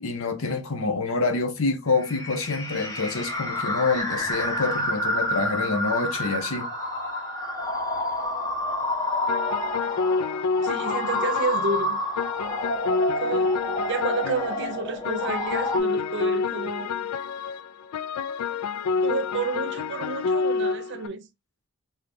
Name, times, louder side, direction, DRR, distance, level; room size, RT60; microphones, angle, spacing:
voice 1, 0.0-6.7, left 3 dB, 65° left, 0.8 m, -27 dB
sound 1, 2.0-15.8, left 1 dB, 15° left, 0.7 m, -29 dB
sound 2, 9.3-21.1, left 4 dB, 90° left, 0.3 m, -28 dB
voice 2, 10.6-12.0 13.2-13.6 13.9-16.9 19.0-21.3, right 4 dB, 50° right, 0.5 m, -30 dB
3.7 x 2.7 x 3.4 m
head